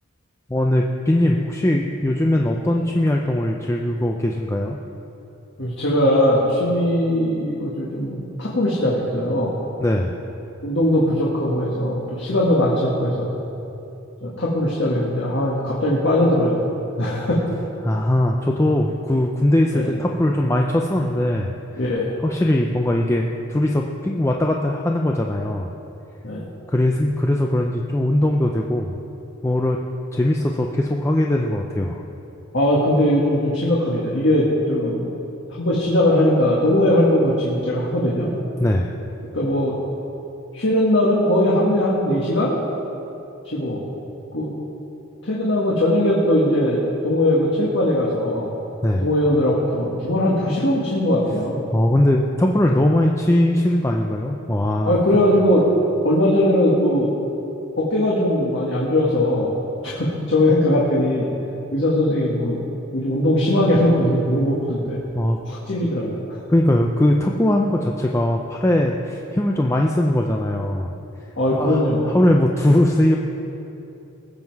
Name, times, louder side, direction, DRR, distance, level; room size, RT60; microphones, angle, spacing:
voice 1, 0.5-4.8 9.8-10.2 17.8-21.5 22.2-25.7 26.7-28.9 29.4-29.8 30.1-32.0 38.6-38.9 48.8-49.1 51.7-55.0 65.1-65.4 66.5-70.9 71.5-73.2, left 1 dB, 15° left, 1 dB, 0.5 m, -20 dB
voice 2, 5.6-9.5 10.6-13.3 14.2-16.7 17.0-17.5 19.7-19.9 21.8-22.1 26.2-26.5 32.5-35.0 35.6-38.3 39.3-39.8 40.5-42.5 43.5-43.8 44.3-44.5 45.2-48.5 49.0-51.6 54.8-55.6 56.0-57.1 57.8-59.5 59.8-61.3 61.7-62.6 62.9-65.0 65.4-66.4 71.4-72.2, left 1 dB, 55° left, -5 dB, 1.7 m, -20 dB
20.0 x 7.6 x 4.7 m, 2.9 s
head